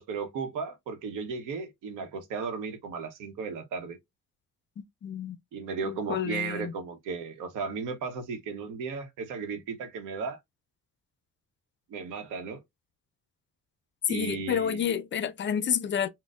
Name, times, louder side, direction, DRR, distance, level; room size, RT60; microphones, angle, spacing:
voice 1, 0.0-4.0 5.5-10.4 11.9-12.6 14.1-14.9, right 5 dB, 90° right, 0.8 m, -35 dB
voice 2, 4.8-5.4 5.8-6.7 14.1-16.1, left 8 dB, 40° left, 0.4 m, -30 dB
4.0 x 2.1 x 2.3 m
cardioid pair, 90°, 30 cm